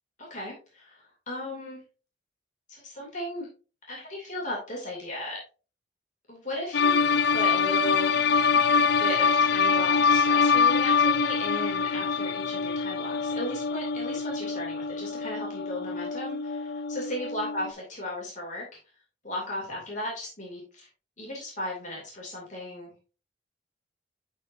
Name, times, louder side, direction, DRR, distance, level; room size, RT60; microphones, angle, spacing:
voice 1, 0.2-1.8 2.7-3.5 3.9-5.4 6.3-8.5 9.0-18.6 19.2-20.9 21.2-23.1, left 1 dB, 40° left, -2 dB, 2.5 m, -36 dB
sound 1, 6.7-17.7, left 5 dB, 60° left, 0.4 m, -25 dB
11.0 x 4.4 x 2.6 m, 0.33 s
head